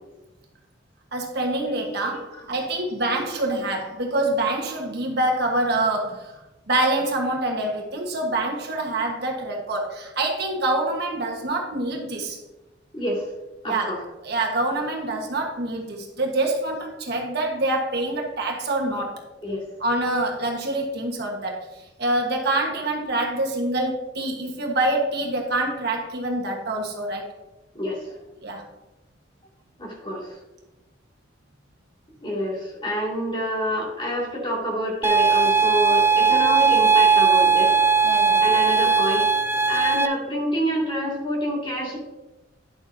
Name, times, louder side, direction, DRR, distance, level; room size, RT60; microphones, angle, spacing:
voice 1, 1.1-6.4 6.7-12.4 13.6-19.2 19.8-27.3 28.4-28.6 38.0-38.5, right 2 dB, 55° right, 1 dB, 1.4 m, -26 dB
voice 2, 2.0-2.5 12.9-13.3 13.6-14.0 19.4-19.6 27.7-28.1 29.8-30.4 32.2-37.7 38.4-39.3 39.7-42.0, equal, 25° left, -3 dB, 2.3 m, -27 dB
sound 1, 35.0-40.1, right 5 dB, 15° right, 0.4 m, -18 dB
10.5 x 7.1 x 2.7 m, 1.0 s
head